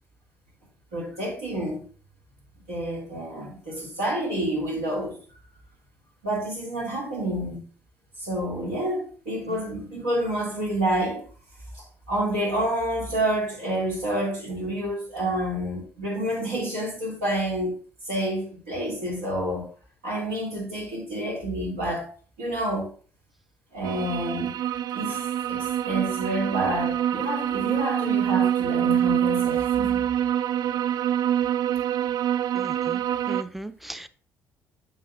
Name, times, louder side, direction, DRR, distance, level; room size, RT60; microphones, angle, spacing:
voice 1, 0.9-1.8 2.7-5.2 6.2-7.6 8.2-11.2 11.7-17.8 18.0-19.7 20.0-22.1 22.4-22.9 23.7-24.5 24.9-25.2 25.5-30.0, right 1 dB, 85° right, 2.7 m, -28 dB
sound 1, 23.8-33.4, right 10 dB, 70° right, 0.4 m, -25 dB
voice 2, 32.5-33.0 33.3-34.1, right 1 dB, ahead, 0.5 m, -37 dB
7.7 x 7.5 x 2.6 m
hypercardioid pair, 50°, 7 cm